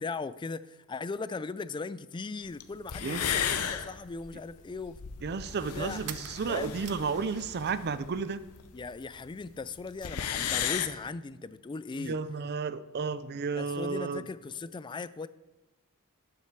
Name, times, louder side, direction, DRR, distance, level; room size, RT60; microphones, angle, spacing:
voice 1, 0.0-5.0 5.7-6.0 6.5-6.7 8.7-12.2 13.6-15.3, left 4 dB, 20° left, 0.3 m, -38 dB
sound 1, 2.6-2.7 2.9-8.9 9.2-9.3 9.5-9.6 9.8-10.9, left 8 dB, 85° left, 0.7 m, -34 dB
voice 2, 5.2-8.4 12.0-14.2, right 5 dB, 45° right, 0.4 m, -32 dB
sound 2, 6.0-7.9 8.2-9.1, right 11 dB, 85° right, 0.7 m, -47 dB
11.5 x 7.6 x 4.7 m
head